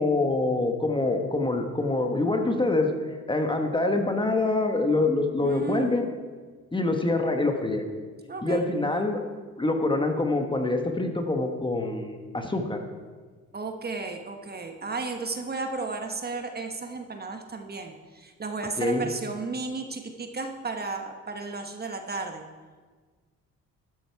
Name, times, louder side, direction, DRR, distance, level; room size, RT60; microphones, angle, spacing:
voice 1, 0.0-6.1 6.7-7.8 8.4-9.2 9.6-12.8 18.8-19.1, left 2 dB, 15° left, 4 dB, 1.4 m, -25 dB
voice 2, 5.4-6.0 8.3-8.6 13.5-22.4, right 3 dB, 30° right, 5 dB, 1.2 m, -33 dB
12.5 x 10.0 x 4.7 m, 1.4 s
cardioid pair, 90°, 30 cm